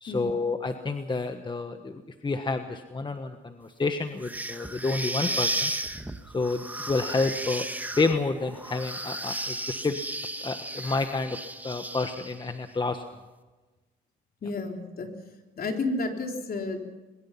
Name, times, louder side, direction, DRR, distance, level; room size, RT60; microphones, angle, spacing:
voice 1, 0.0-5.7 6.3-7.6 8.0-10.0 10.4-11.4 11.6-13.0, left 3 dB, 25° left, 7 dB, 1.4 m, -29 dB
sound 1, 4.2-12.5, right 1 dB, 10° right, 1.5 m, -34 dB
voice 2, 14.4-15.1 15.6-16.9, left 3 dB, 50° left, 3 dB, 3.7 m, -31 dB
23.0 x 22.0 x 5.8 m, 1.2 s
cardioid pair, 90°, 20 cm